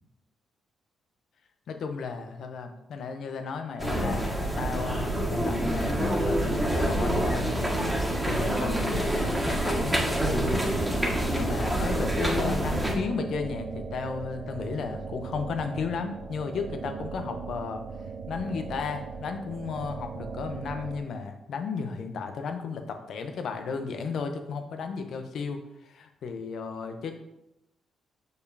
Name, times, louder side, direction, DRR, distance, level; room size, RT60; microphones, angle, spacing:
voice 1, 1.7-7.7 8.2-10.7 11.3-17.8 18.3-27.1, left 5 dB, 70° left, 6 dB, 0.7 m, -34 dB
sound 1, 3.8-12.9, right 1 dB, 15° right, 1.7 m, -27 dB
sound 2, 10.4-21.0, right 5 dB, 55° right, 0.7 m, -39 dB
6.7 x 5.0 x 2.8 m, 0.88 s
supercardioid pair, 50°, 0 cm